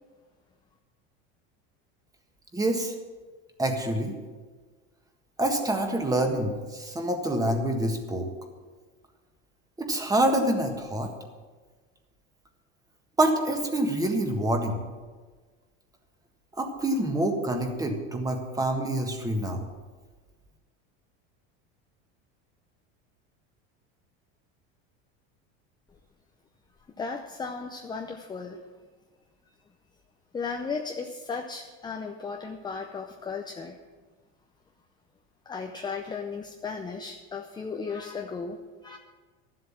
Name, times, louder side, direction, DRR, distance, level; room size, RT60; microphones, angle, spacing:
voice 1, 2.5-2.9 3.6-4.1 5.4-8.3 9.8-11.1 13.2-14.8 16.6-19.7, right 1 dB, 10° right, 3 dB, 1.6 m, -26 dB
voice 2, 27.0-28.6 30.3-33.8 35.5-39.0, left 5 dB, 15° left, 4 dB, 0.6 m, -35 dB
12.5 x 7.8 x 7.4 m, 1.4 s
supercardioid pair, 135°, 32 cm